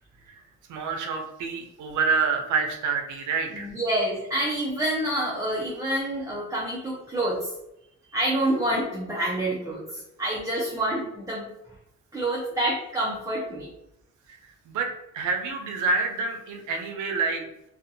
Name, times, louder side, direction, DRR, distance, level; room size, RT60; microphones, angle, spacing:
voice 1, 0.7-3.7 14.7-17.4, right 4 dB, 80° right, 4 dB, 0.6 m, -27 dB
voice 2, 3.5-7.5 8.1-11.5 12.1-13.7, right 1 dB, 10° right, -4 dB, 0.7 m, -27 dB
2.5 x 2.4 x 2.6 m, 0.84 s
cardioid pair, 90°, 30 cm